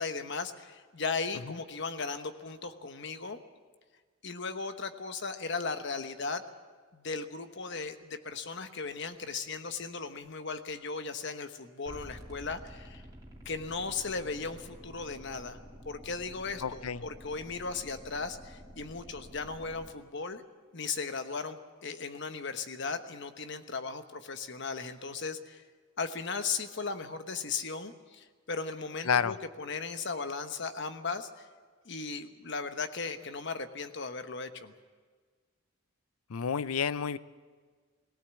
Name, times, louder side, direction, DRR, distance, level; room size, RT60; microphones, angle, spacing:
voice 1, 0.0-3.4 4.2-6.4 6.9-13.0 13.4-20.4 20.7-25.6 26.0-31.5 31.8-34.7, left 4 dB, 55° left, 9 dB, 1.1 m, -37 dB
sound 1, 11.9-19.9, equal, 20° right, 2.6 m, -50 dB
voice 2, 16.6-17.0 29.1-29.3 36.3-37.2, left 6 dB, 85° left, 16 dB, 0.6 m, -29 dB
18.5 x 17.5 x 8.2 m, 1.5 s
head